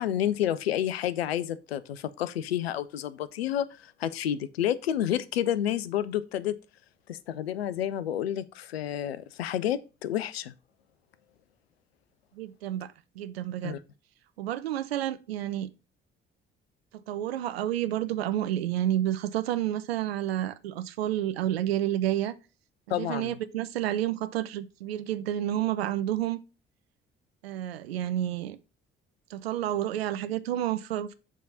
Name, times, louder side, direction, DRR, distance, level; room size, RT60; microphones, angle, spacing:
voice 1, 0.0-6.6 7.1-10.5 13.6-13.8 22.9-23.4, left 11 dB, 80° left, 0.5 m, -30 dB
voice 2, 12.4-13.8 14.4-15.7 17.1-22.3 22.9-26.4 27.4-28.6 29.3-31.1, right 12 dB, 80° right, 0.5 m, -30 dB
7.3 x 3.6 x 5.4 m
figure-of-eight pair, 45°, 30 cm